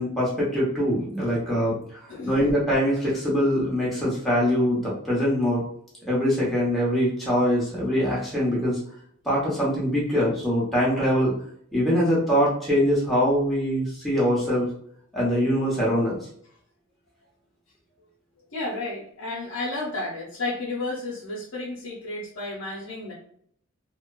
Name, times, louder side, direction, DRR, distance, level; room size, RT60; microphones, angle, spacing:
voice 1, 0.0-5.6 6.1-8.8 9.2-11.3 11.7-14.7 15.1-16.2, equal, ahead, -7 dB, 0.9 m, -23 dB
voice 2, 18.5-23.1, left 2 dB, 65° left, -8 dB, 0.8 m, -32 dB
3.0 x 2.1 x 2.3 m, 0.63 s
head